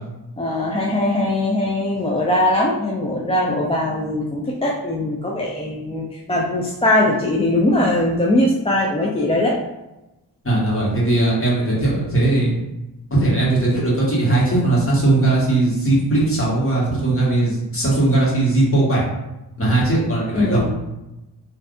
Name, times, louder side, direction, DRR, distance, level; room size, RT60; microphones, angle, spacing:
voice 1, 0.4-9.6 20.3-20.7, left 1 dB, 15° left, -3 dB, 0.4 m, -20 dB
voice 2, 10.4-12.5 13.1-19.0 19.6-20.7, right 2 dB, 30° left, -6 dB, 1.5 m, -18 dB
3.3 x 2.6 x 2.5 m, 0.98 s
cardioid pair, 70°, 41 cm